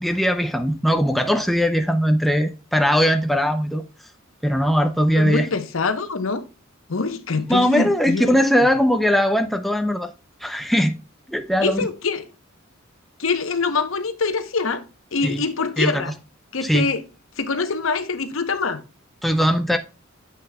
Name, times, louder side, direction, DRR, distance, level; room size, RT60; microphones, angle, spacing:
voice 1, 0.0-3.8 4.4-5.5 7.5-10.1 10.4-11.0 11.3-11.8 15.2-15.4 15.8-16.0 16.6-16.9 19.2-19.8, equal, ahead, 0.6 m, -20 dB
voice 2, 5.1-6.4 6.9-8.7 11.5-12.3 13.2-14.8 15.1-16.1 16.5-17.0 17.4-18.8, left 4 dB, 75° left, 0.9 m, -24 dB
8.0 x 6.4 x 2.3 m
head